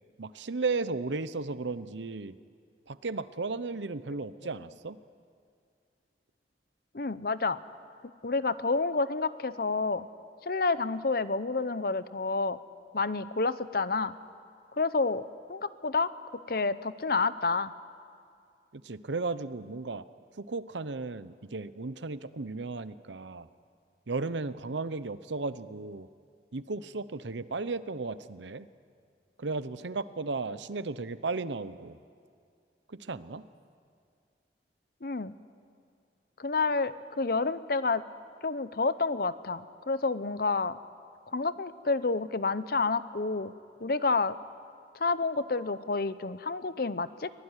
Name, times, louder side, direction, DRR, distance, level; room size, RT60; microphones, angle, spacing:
voice 1, 0.2-2.4 2.9-5.0 18.7-20.0 20.4-23.5 24.1-26.1 26.5-28.7 29.4-32.0 32.9-33.5, right 3 dB, 90° right, 14 dB, 0.8 m, -35 dB
voice 2, 6.9-7.6 8.2-10.1 10.4-12.6 12.9-14.1 14.8-17.7 35.0-35.3 36.4-38.0 38.4-40.8 41.3-43.5 43.8-44.4 44.9-47.3, left 3 dB, 55° left, 14 dB, 0.8 m, -29 dB
23.5 x 19.5 x 9.8 m, 2.3 s
head